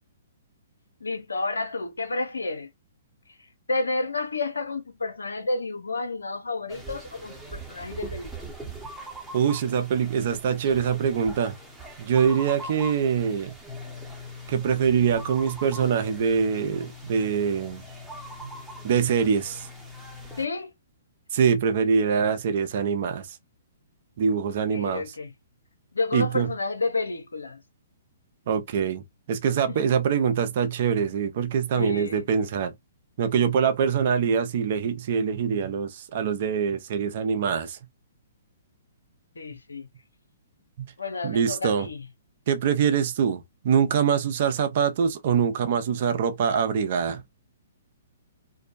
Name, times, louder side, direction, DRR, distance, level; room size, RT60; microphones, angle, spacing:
voice 1, 1.0-2.7 3.7-8.3 20.4-20.7 24.7-25.3 25.9-27.6 29.7-29.8 31.7-32.2 39.4-39.9 41.0-42.0, left 3 dB, 85° left, 0.6 m, -30 dB
sound 1, 6.7-20.5, equal, 5° right, 0.9 m, -41 dB
voice 2, 9.3-11.6 12.0-13.5 14.5-17.8 18.8-19.7 21.3-23.4 24.2-25.0 26.1-26.5 28.5-32.7 33.2-37.8 41.2-41.9 42.5-47.2, right 7 dB, 55° right, 0.6 m, -24 dB
2.6 x 2.1 x 2.5 m
hypercardioid pair, 130°, 0 cm